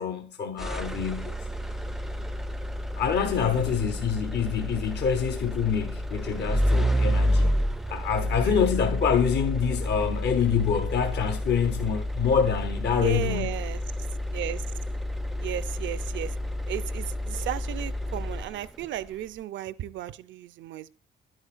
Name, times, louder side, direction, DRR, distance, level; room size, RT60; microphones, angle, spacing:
voice 1, 0.0-1.3 3.0-7.6 7.9-13.6, left 7 dB, 60° left, 0.8 m, -26 dB
sound 1, 0.6-18.9, equal, ahead, 0.3 m, -29 dB
voice 2, 3.3-3.7 8.4-8.6 13.0-13.8 14.3-14.6 15.4-16.4 16.7-20.9, right 12 dB, 70° right, 0.4 m, -34 dB
10.0 x 9.0 x 2.5 m
cardioid pair, 90°, 20 cm